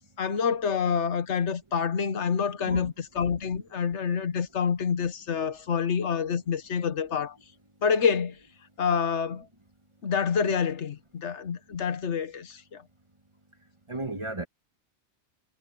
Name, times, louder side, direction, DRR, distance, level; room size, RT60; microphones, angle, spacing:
voice 1, 0.2-7.4 7.8-8.4 8.8-9.5 10.0-12.8, left 6 dB, 80° left, 1.4 m, -27 dB
voice 2, 2.6-2.9 13.9-14.5, right 2 dB, 25° right, 1.3 m, -34 dB
omnidirectional pair, 1.2 m